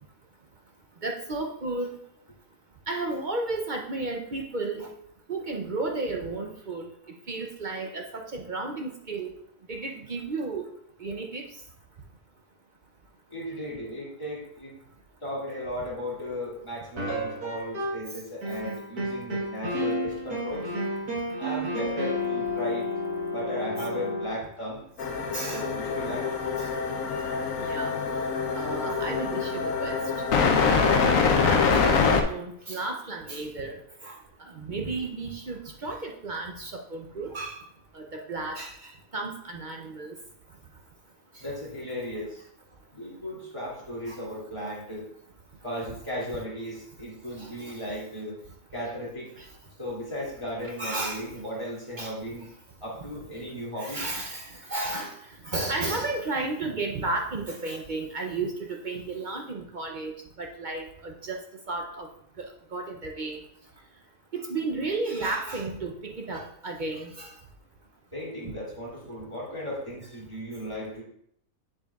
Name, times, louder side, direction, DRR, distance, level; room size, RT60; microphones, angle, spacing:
voice 1, 1.0-1.9 2.9-4.9 5.3-6.9 7.3-9.3 9.7-10.7 11.0-11.4 25.3-25.7 26.6-26.7 27.6-27.9 28.5-30.0 30.9-33.8 34.0-34.2 34.5-37.6 37.9-40.1 41.3-41.4 44.1-44.2 47.4-47.8 49.4-49.5 50.8-51.3 52.0-52.1 53.8-55.2 55.4-61.4 61.7-62.1 62.4-63.4 64.3-67.3, right 3 dB, 45° right, 1 dB, 0.6 m, -33 dB
voice 2, 13.3-14.7 15.2-20.7 21.4-22.9 23.3-24.8 25.5-26.3 27.1-27.4 41.4-42.4 42.9-45.1 45.6-48.4 48.7-49.3 49.8-52.5 52.8-54.0 68.1-71.0, equal, 20° left, -7 dB, 2.8 m, -36 dB
sound 1, 17.0-18.1 18.4-24.3, left 1 dB, 90° right, 2.1 m, -31 dB
sound 2, 25.0-32.2, left 5 dB, 65° left, 1.1 m, -25 dB
7.8 x 7.2 x 2.4 m, 0.68 s
omnidirectional pair, 1.6 m